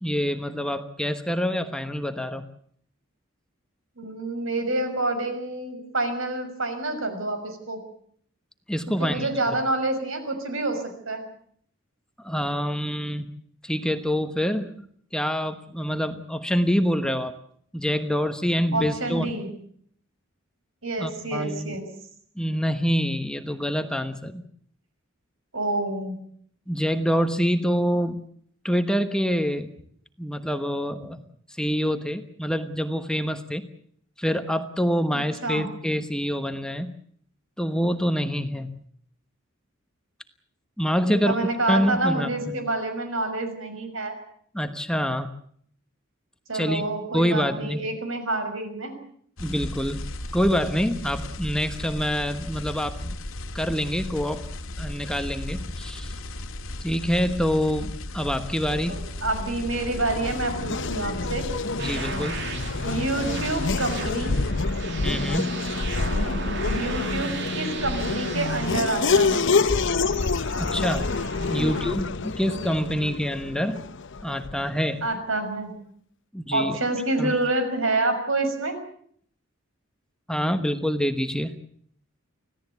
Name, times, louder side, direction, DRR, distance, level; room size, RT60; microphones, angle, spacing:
voice 1, 0.0-2.4 8.7-9.3 12.2-13.3 13.6-14.9 15.1-17.3 17.7-19.3 21.0-21.8 22.4-24.4 26.7-28.3 28.6-29.7 30.2-31.2 31.5-33.7 34.2-36.9 37.6-38.7 40.8-41.3 41.7-42.5 44.5-45.3 46.5-46.8 47.1-47.8 49.4-50.1 50.3-53.2 53.5-54.5 54.8-56.1 56.8-58.9 61.8-62.4 65.0-65.6 70.6-71.1 71.5-73.9 74.2-75.0 76.3-76.8 77.2-77.3 80.3-81.6, equal, 5° left, 8 dB, 1.1 m, -26 dB
voice 2, 4.0-7.8 9.0-11.2 18.7-19.5 20.8-21.9 25.5-26.2 35.4-35.7 41.0-44.2 46.5-48.9 58.7-61.5 62.8-64.4 66.6-69.5 71.5-71.7 75.0-75.7 76.5-78.8, right 2 dB, 75° right, 7 dB, 6.0 m, -28 dB
sound 1, 49.4-64.5, left 1 dB, 85° left, 1.9 m, -35 dB
Race car auto racing / Accelerating revving vroom, 59.2-74.8, left 4 dB, 60° left, 0.9 m, -27 dB
sound 2, 61.8-71.9, right 4 dB, 60° right, 2.7 m, -37 dB
25.5 x 16.5 x 8.3 m, 0.63 s
head